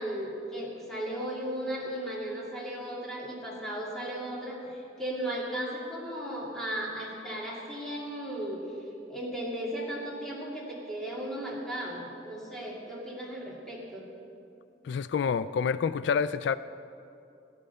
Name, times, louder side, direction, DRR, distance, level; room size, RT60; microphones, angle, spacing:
voice 1, 0.0-8.6 9.1-14.1, right 1 dB, 5° left, -5 dB, 2.5 m, -36 dB
voice 2, 14.8-16.6, left 6 dB, 75° left, 14 dB, 0.3 m, -28 dB
15.0 x 10.0 x 5.6 m, 2.7 s
head